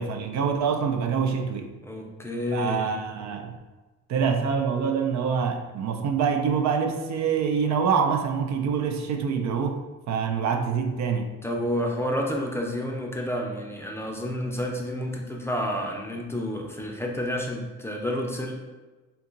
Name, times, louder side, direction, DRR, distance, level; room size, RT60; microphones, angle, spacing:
voice 1, 0.0-1.7 2.5-3.6 4.1-11.3, right 6 dB, 65° right, 5 dB, 0.4 m, -25 dB
voice 2, 1.8-2.9 11.4-18.5, equal, 10° left, 0 dB, 0.5 m, -30 dB
2.8 x 2.3 x 3.8 m, 1.2 s
cardioid pair, 90°, 30 cm